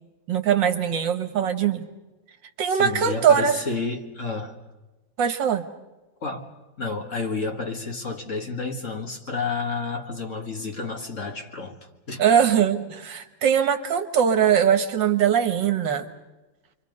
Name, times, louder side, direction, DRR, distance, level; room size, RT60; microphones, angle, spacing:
voice 1, 0.3-1.9 2.6-3.6 5.2-5.7 12.2-16.1, right 8 dB, 75° right, 8 dB, 2.0 m, -21 dB
voice 2, 2.7-4.6 6.2-6.5 6.8-11.8 12.1-12.2, left 4 dB, 40° left, 3 dB, 2.2 m, -30 dB
29.0 x 24.0 x 5.3 m, 1.1 s
omnidirectional pair, 2.0 m